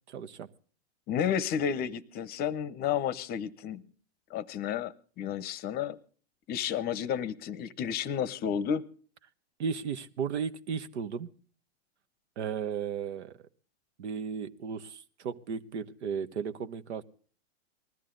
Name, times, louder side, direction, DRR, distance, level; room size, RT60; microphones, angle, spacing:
voice 1, 0.1-0.5 9.6-11.3 12.4-13.4 14.0-17.0, right 6 dB, 75° right, 14 dB, 1.1 m, -35 dB
voice 2, 1.1-3.8 4.3-6.0 6.5-8.8, left 8 dB, 30° left, 19 dB, 0.7 m, -31 dB
20.0 x 13.5 x 3.8 m, 0.41 s
hypercardioid pair, 125°, 34 cm